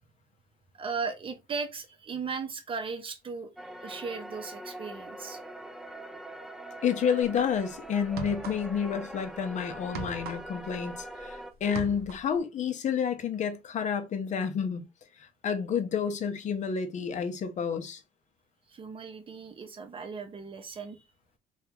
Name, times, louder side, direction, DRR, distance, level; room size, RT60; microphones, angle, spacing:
voice 1, 0.8-3.5 3.8-5.4 18.7-21.0, right 5 dB, 30° right, 0.7 m, -37 dB
sound 1, 3.6-11.5, right 1 dB, ahead, 0.4 m, -43 dB
voice 2, 6.8-14.8 15.2-18.0, left 7 dB, 45° left, 0.7 m, -30 dB
sound 2, 7.2-7.4 8.0-8.9 9.2-11.3 11.6-12.4, right 6 dB, 70° right, 0.6 m, -40 dB
2.8 x 2.3 x 3.4 m
cardioid pair, 110°, 17 cm